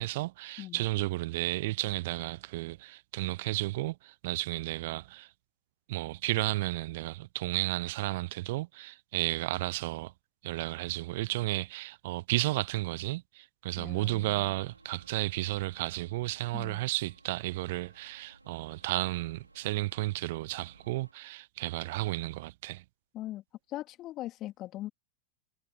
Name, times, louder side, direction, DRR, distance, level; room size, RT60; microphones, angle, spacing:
voice 1, 0.0-5.3 5.9-10.1 10.4-22.8, right 19 dB, 50° right, 0.9 m, -33 dB
voice 2, 0.6-0.9 13.8-14.6 16.5-16.8 23.1-23.4 23.7-24.9, left 15 dB, 35° left, 3.5 m, -41 dB
sound 1, 14.1-21.1, right 2 dB, 85° right, 5.0 m, -60 dB
figure-of-eight pair, 90°, 0 cm